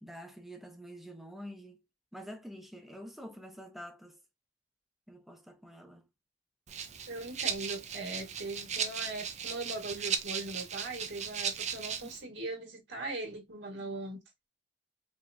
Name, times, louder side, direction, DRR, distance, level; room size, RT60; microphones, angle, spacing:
voice 1, 0.0-1.8 2.1-4.2 5.1-6.1 12.0-12.1, equal, ahead, 0.8 m, -47 dB
Rattle (instrument), 6.7-12.2, right 7 dB, 40° right, 0.6 m, -37 dB
voice 2, 7.1-14.2, right 2 dB, 75° right, 1.7 m, -40 dB
4.7 x 2.9 x 2.7 m
head